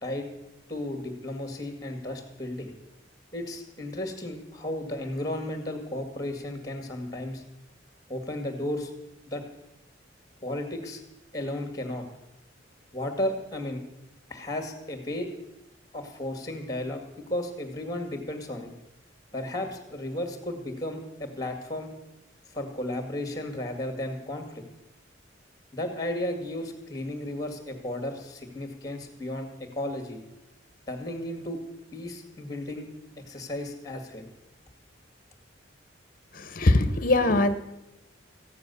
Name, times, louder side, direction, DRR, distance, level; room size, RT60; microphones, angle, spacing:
voice 1, 0.7-2.7 3.3-7.4 8.1-8.9 9.3-9.4 10.4-11.0 11.3-12.0 12.9-13.8 14.3-15.3 15.9-18.7 19.3-21.9 22.5-24.6 25.7-30.2 30.9-31.6 31.9-32.9 33.2-34.3, left 1 dB, 20° left, 6 dB, 2.1 m, -34 dB
voice 2, 36.3-37.5, left 2 dB, 45° left, 12 dB, 1.0 m, -22 dB
15.0 x 9.7 x 7.0 m, 0.91 s
head